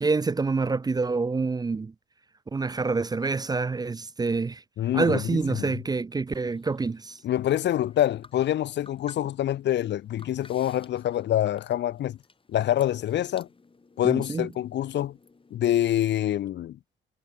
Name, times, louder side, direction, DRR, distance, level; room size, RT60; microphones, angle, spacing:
voice 1, 0.0-1.9 2.5-4.6 4.9-7.2 14.0-14.5, right 4 dB, 20° right, 0.5 m, -27 dB
voice 2, 4.8-5.7 7.2-12.2 12.5-13.5 14.0-15.2 15.5-16.8, left 12 dB, 65° left, 0.7 m, -26 dB
sound 1, 6.3-15.6, left 4 dB, 25° left, 7.2 m, -55 dB
cardioid pair, 90°, 20 cm